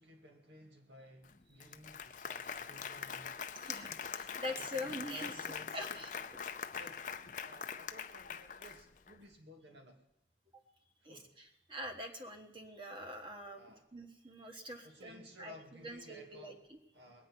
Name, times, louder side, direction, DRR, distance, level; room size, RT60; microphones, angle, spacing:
voice 1, 0.0-3.4 3.7-4.2 4.5-10.0 11.0-11.3 13.6-13.9 14.8-16.6 16.9-17.3, equal, 85° right, 3 dB, 2.4 m, -56 dB
Applause, 1.2-1.3 1.6-9.1, left 7 dB, 45° left, 0.6 m, -43 dB
voice 2, 4.2-5.4 5.7-6.4 11.0-13.6 13.9-16.8, left 1 dB, 30° right, 5 dB, 1.4 m, -44 dB
21.0 x 9.3 x 6.1 m, 0.84 s
head